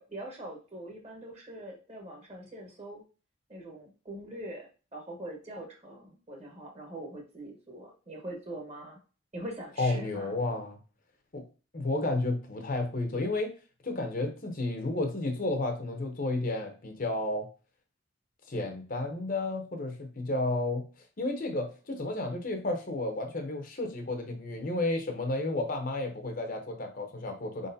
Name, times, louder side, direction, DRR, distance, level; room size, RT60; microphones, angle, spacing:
voice 1, 0.0-3.0 3.5-9.0 9.3-10.4, right 1 dB, 30° right, 1 dB, 1.2 m, -43 dB
voice 2, 9.8-10.8 11.3-11.4 11.7-13.5 13.8-17.5 18.5-20.8 21.2-27.7, left 2 dB, 45° left, 5 dB, 0.8 m, -32 dB
4.7 x 3.9 x 2.7 m, 0.35 s
head